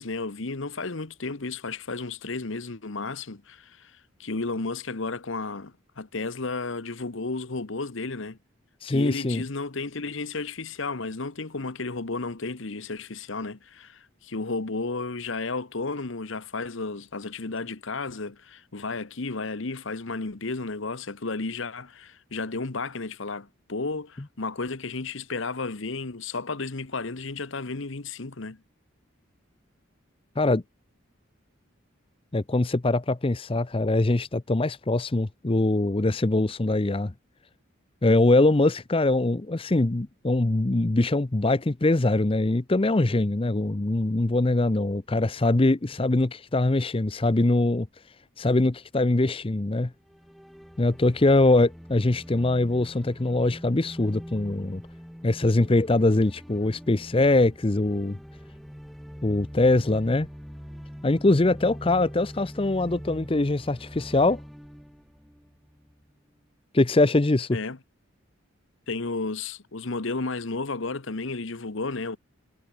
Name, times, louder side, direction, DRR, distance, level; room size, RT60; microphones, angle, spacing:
voice 1, 0.0-8.4 8.9-28.6 67.5-67.8 68.9-72.2, left 3 dB, 65° left, 1.1 m, -33 dB
voice 2, 8.8-9.4 30.4-30.6 32.3-37.1 38.0-47.9 48.4-49.9 50.8-54.8 55.2-58.2 59.2-60.3 61.0-64.4 66.7-67.6, left 2 dB, 25° left, 0.6 m, -23 dB
sound 1, 50.0-66.1, equal, ahead, 7.2 m, -43 dB
head